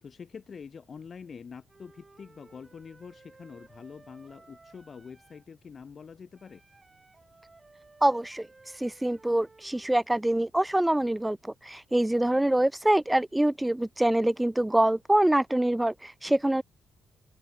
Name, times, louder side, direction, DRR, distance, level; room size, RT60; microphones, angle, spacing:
voice 1, 0.0-6.6, left 6 dB, 45° left, 2.6 m, -45 dB
Wind instrument woodwind instrument, 1.7-5.5 6.3-10.0, right 3 dB, 25° right, 4.5 m, -57 dB
voice 2, 8.0-16.6, right 1 dB, 10° right, 0.6 m, -25 dB
cardioid pair, 90°, 0 cm